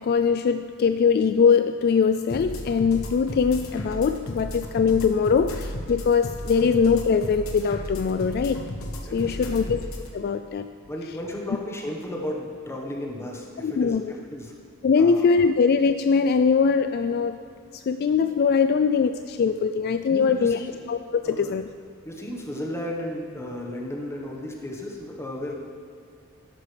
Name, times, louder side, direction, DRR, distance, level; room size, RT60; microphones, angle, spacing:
voice 1, 0.0-8.7 9.1-9.9 10.1-10.7 13.6-14.1 14.8-17.4 17.7-21.7, left 5 dB, 50° left, 9 dB, 0.3 m, -22 dB
sound 1, 2.3-10.1, left 1 dB, 80° left, 1.1 m, -34 dB
voice 2, 9.0-9.7 10.9-14.5 15.0-15.3 20.1-20.8 21.2-21.5 22.0-25.6, left 1 dB, 15° left, -1 dB, 1.3 m, -34 dB
13.0 x 11.0 x 3.4 m, 2.4 s
head